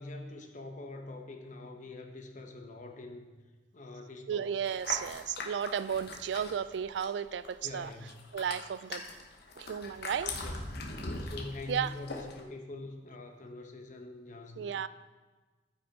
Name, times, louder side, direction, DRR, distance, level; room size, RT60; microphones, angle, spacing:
voice 1, 0.0-3.3 3.7-4.5 7.6-8.3 10.4-10.6 11.2-14.7, left 2 dB, 45° left, 4 dB, 1.0 m, -44 dB
voice 2, 4.3-7.9 8.3-9.0 9.6-10.3 11.7-11.9 14.6-14.9, right 8 dB, 75° right, 15 dB, 0.3 m, -33 dB
sound 1, 4.7-7.2 7.4-12.4, left 3 dB, 65° left, 1.2 m, -41 dB
14.0 x 6.0 x 3.7 m, 1.3 s
head